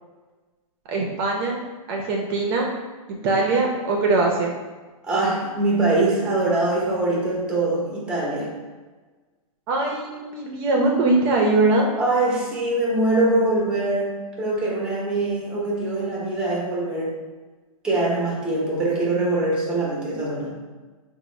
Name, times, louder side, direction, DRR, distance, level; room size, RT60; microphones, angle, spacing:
voice 1, 0.9-1.6 1.9-2.7 3.2-4.5 9.7-11.9 18.9-19.3, right 3 dB, 45° right, 0 dB, 0.5 m, -21 dB
voice 2, 5.0-8.5 11.9-14.1 14.4-17.1 17.8-20.5, right 2 dB, 5° right, -4 dB, 0.7 m, -23 dB
3.9 x 2.0 x 3.1 m, 1.3 s
hypercardioid pair, 135°, 19 cm